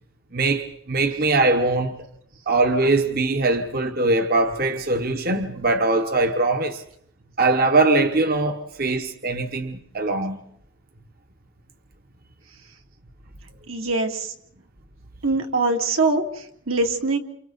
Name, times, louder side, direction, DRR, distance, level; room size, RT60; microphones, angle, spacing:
voice 1, 0.3-2.0 2.5-6.8 7.4-10.4, right 2 dB, 45° right, 1.1 m, -21 dB
voice 2, 13.7-14.3 15.2-17.2, right 3 dB, 80° right, 2.8 m, -23 dB
29.0 x 29.0 x 4.1 m
head